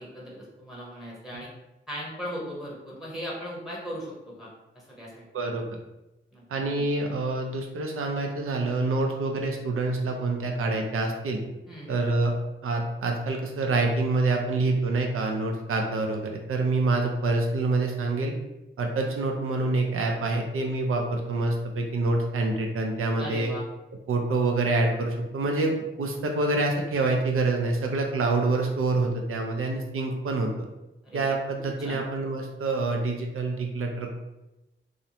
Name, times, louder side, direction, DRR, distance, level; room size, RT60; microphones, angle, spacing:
voice 1, 0.0-1.5 1.9-5.3 6.3-6.4 11.7-12.0 23.2-23.6 31.0-32.0, equal, ahead, -5 dB, 0.8 m, -38 dB
voice 2, 5.3-5.8 6.5-11.4 11.9-12.3 12.6-18.3 18.8-23.5 24.1-30.5 31.1-34.2, right 3 dB, 85° right, 2 dB, 0.4 m, -26 dB
2.5 x 2.0 x 2.8 m, 0.98 s
cardioid pair, 60°, 21 cm